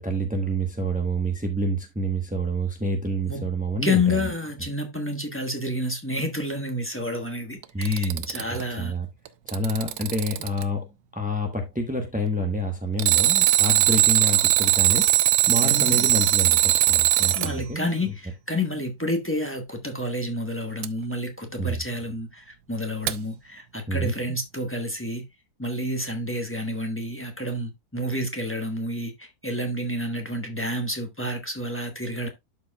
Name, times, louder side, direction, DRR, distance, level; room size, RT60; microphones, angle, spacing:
voice 1, 0.0-4.2 7.7-8.3 8.8-9.1 9.5-15.1 15.5-18.1 21.6-21.8 23.9-24.1, right 1 dB, 10° right, 0.3 m, -28 dB
voice 2, 3.8-8.9 15.6-16.1 17.3-25.2 25.6-32.3, left 1 dB, 10° left, 0.8 m, -29 dB
Alarm, 7.6-8.6 9.3-10.6 13.0-17.5 20.8-20.9 23.1-23.2, right 14 dB, 80° right, 1.3 m, -20 dB
12.0 x 4.6 x 2.3 m
omnidirectional pair, 2.1 m